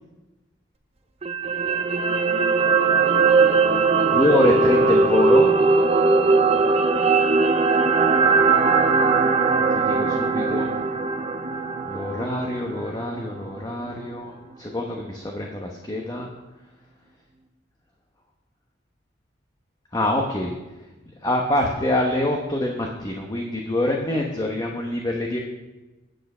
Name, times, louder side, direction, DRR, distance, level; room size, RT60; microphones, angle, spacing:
sound 1, 1.2-13.5 13.9-14.0, right 4 dB, 35° right, 0.6 m, -20 dB
voice 1, 4.1-5.5 9.7-10.7 11.9-16.3 19.9-20.5 21.2-25.4, left 1 dB, 20° left, 0 dB, 1.0 m, -25 dB
9.1 x 8.4 x 5.6 m, 1.1 s
head